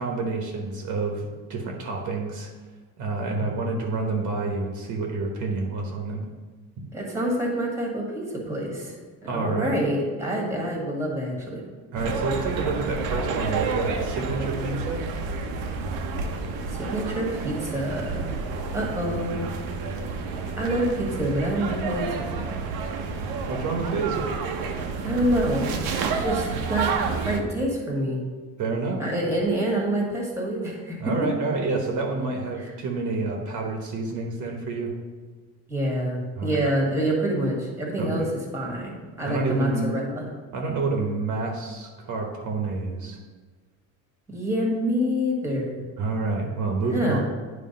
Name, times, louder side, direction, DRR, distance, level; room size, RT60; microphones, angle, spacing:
voice 1, 0.0-2.5 3.0-6.2 6.8-6.9 9.3-9.8 11.9-15.0 23.5-24.3 28.6-29.0 31.0-34.9 36.4-36.6 38.0-38.3 39.2-39.9 40.5-43.2 46.0-47.2, right 3 dB, 55° right, 1 dB, 1.1 m, -28 dB
voice 2, 6.9-9.0 9.3-11.6 16.7-18.2 18.7-19.5 20.6-22.4 25.0-28.2 29.0-31.1 32.6-32.7 35.7-40.3 44.3-45.9 46.9-47.2, right 1 dB, 5° right, -1 dB, 1.5 m, -27 dB
sound 1, 12.0-27.4, right 4 dB, 80° right, 0.9 m, -30 dB
9.5 x 3.3 x 5.2 m, 1.4 s
cardioid pair, 145°, 36 cm